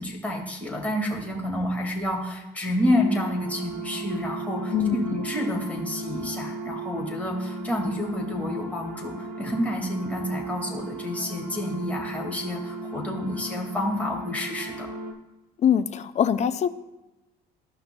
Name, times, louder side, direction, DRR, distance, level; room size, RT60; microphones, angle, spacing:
voice 1, 0.0-14.9, left 1 dB, 10° left, -1 dB, 1.9 m, -29 dB
sound 1, 2.8-15.1, right 2 dB, 70° right, 1.0 m, -36 dB
voice 2, 4.7-5.3 15.6-16.7, left 9 dB, 45° left, 12 dB, 0.4 m, -23 dB
14.0 x 5.7 x 2.2 m, 1.0 s
cardioid pair, 110°, 17 cm